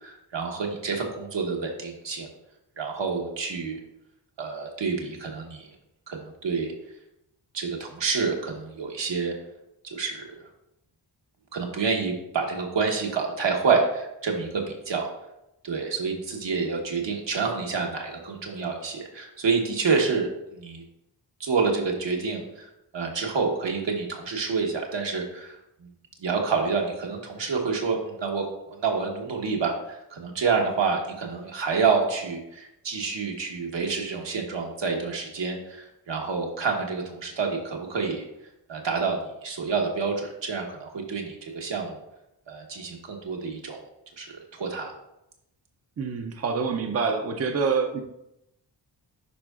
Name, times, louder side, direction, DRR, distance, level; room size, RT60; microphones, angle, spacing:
voice 1, 0.0-2.3 2.8-3.8 4.4-5.7 6.1-6.7 7.5-9.4 9.8-10.4 11.5-15.1 15.6-20.8 21.4-22.7 22.9-25.5 25.8-25.9 26.2-28.5 28.8-38.3 38.7-42.0 42.5-43.8 44.2-45.0, right 5 dB, 75° right, 1 dB, 1.3 m, -28 dB
voice 2, 46.0-48.0, right 5 dB, 35° right, 5 dB, 0.5 m, -26 dB
11.0 x 4.6 x 2.4 m, 0.87 s
wide cardioid pair, 150°, 44 cm